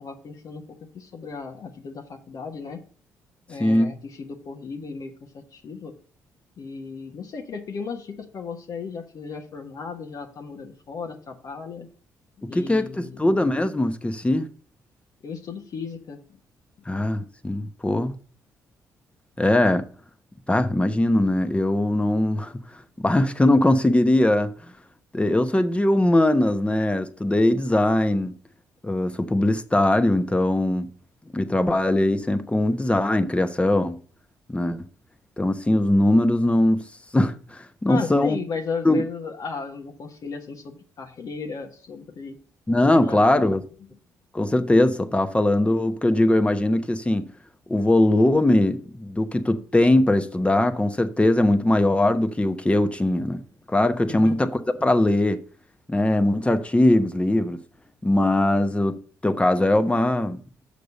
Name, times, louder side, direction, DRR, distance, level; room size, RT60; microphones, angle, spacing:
voice 1, 0.0-2.8 3.5-5.9 6.6-11.9 12.5-13.3 15.2-16.4 16.8-16.9 37.9-42.4 42.9-43.5 43.8-43.9 54.1-54.4, left 5 dB, 60° left, 1.3 m, -35 dB
voice 2, 3.6-3.9 12.4-14.5 16.9-18.1 19.4-19.8 20.5-22.5 23.0-24.5 25.1-28.4 28.8-30.9 31.3-34.0 34.5-34.9 35.4-36.8 37.1-38.4 38.8-39.0 42.7-43.6 44.3-47.3 47.7-53.4 53.7-55.4 55.9-57.6 58.0-60.4, left 1 dB, 15° left, 1.1 m, -21 dB
6.6 x 5.2 x 6.6 m
supercardioid pair, 55°, 7 cm